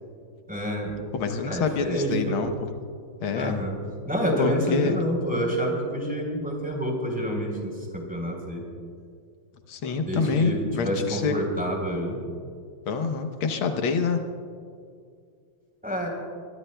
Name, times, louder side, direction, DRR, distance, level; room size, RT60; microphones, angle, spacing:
voice 1, 0.5-1.0 1.4-2.4 3.3-3.8 4.0-8.7 10.1-12.2 15.8-16.1, equal, 5° right, -1 dB, 3.7 m, -28 dB
voice 2, 1.1-2.5 3.2-3.6 4.4-4.9 9.7-11.3 12.9-14.2, left 5 dB, 80° left, 5 dB, 1.8 m, -26 dB
25.0 x 21.0 x 2.3 m, 2.3 s
omnidirectional pair, 2.2 m